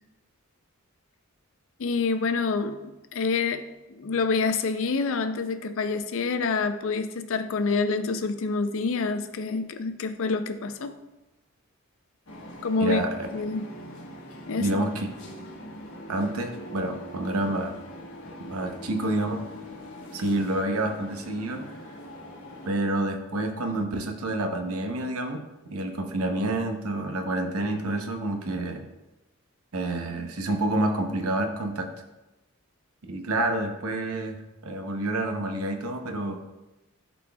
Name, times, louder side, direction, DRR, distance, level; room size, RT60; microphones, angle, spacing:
voice 1, 1.8-2.8 3.1-3.6 3.9-10.9 12.6-13.0 13.3-13.7 14.5-14.7, left 4 dB, 65° left, 9 dB, 0.5 m, -27 dB
sound 1, 12.3-22.7, equal, 85° left, 1.1 m, -42 dB
voice 2, 12.8-13.3 14.6-15.1 16.1-17.7 18.5-19.4 20.1-21.7 22.7-25.4 25.7-28.9 29.7-31.9 33.1-36.4, right 1 dB, 80° right, 5 dB, 0.8 m, -28 dB
11.5 x 4.1 x 2.3 m, 1.0 s
head